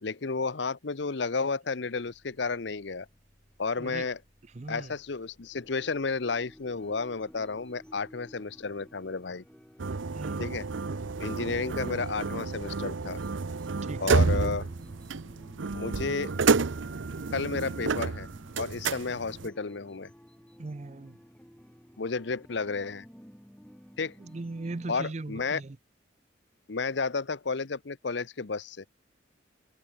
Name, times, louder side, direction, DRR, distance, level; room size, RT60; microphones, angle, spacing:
voice 1, 0.0-3.1 3.6-4.2 4.7-9.4 10.4-10.7 11.2-13.2 14.0-14.7 15.7-16.3 17.3-18.3 18.6-20.1 22.0-23.1 24.0-24.1 24.9-25.6 26.7-28.9, left 4 dB, 70° left, 0.8 m, -32 dB
sound 1, 1.9-16.9, equal, 25° left, 7.7 m, -67 dB
voice 2, 3.8-4.1 4.5-4.9 10.1-10.4 13.8-14.2 20.6-21.2 24.2-25.8, right 2 dB, 35° right, 0.5 m, -38 dB
sound 2, 5.5-25.0, equal, 5° left, 2.1 m, -54 dB
sound 3, 9.8-19.5, right 4 dB, 85° right, 0.7 m, -30 dB
head